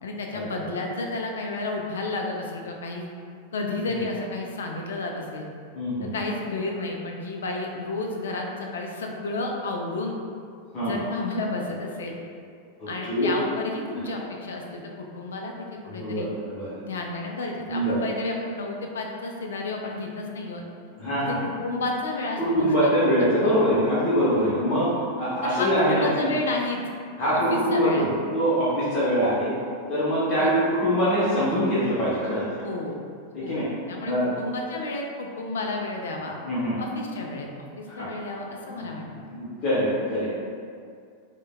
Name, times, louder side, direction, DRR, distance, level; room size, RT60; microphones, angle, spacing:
voice 1, 0.0-3.1 3.5-5.5 6.0-8.5 8.7-10.2 10.8-12.2 12.9-16.3 16.9-20.6 21.3-23.1 23.4-23.6 25.4-26.8 27.2-28.1 30.4-30.6 32.6-32.9 33.4-36.4 36.8-39.1, left 2 dB, 65° left, 1 dB, 0.3 m, -31 dB
voice 2, 5.7-6.1 10.7-11.0 12.8-13.3 15.9-16.7 17.7-18.0 21.0-21.4 22.4-24.9 25.2-26.3 27.2-29.5 29.9-32.6 33.3-33.7 34.0-34.3 36.4-36.8 37.9-38.1 38.7-38.9 39.3-40.3, equal, 35° left, -10 dB, 0.7 m, -24 dB
3.2 x 2.1 x 2.2 m, 2.2 s
figure-of-eight pair, 90°, 0 cm